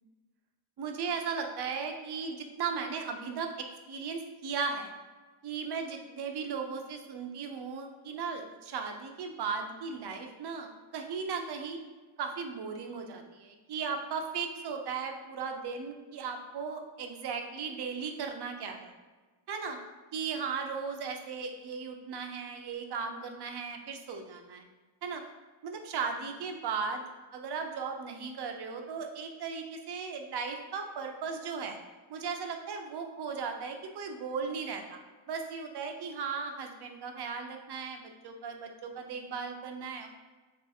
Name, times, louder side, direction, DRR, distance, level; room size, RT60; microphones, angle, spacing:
voice 1, 0.8-4.9 5.4-11.8 12.2-18.9 19.5-19.8 20.1-24.7 25.0-25.2 25.6-27.0 27.3-31.8 32.1-35.0 35.3-40.1, right 5 dB, 55° right, 4 dB, 0.5 m, -37 dB
3.7 x 2.3 x 4.1 m, 1.3 s
wide cardioid pair, 165°, 49 cm